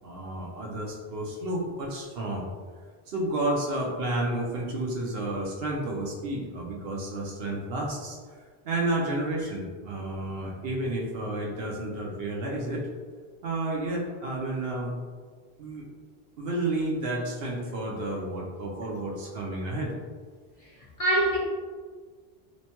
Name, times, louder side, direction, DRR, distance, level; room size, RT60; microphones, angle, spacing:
voice 1, 0.0-2.4 3.1-8.2 8.6-12.8 13.4-15.0 15.6-15.8 16.4-19.9, right 1 dB, 70° right, -2 dB, 0.8 m, -31 dB
voice 2, 20.6-21.4, right 1 dB, 40° left, -8 dB, 0.7 m, -26 dB
3.1 x 2.1 x 2.8 m, 1.5 s
omnidirectional pair, 1.1 m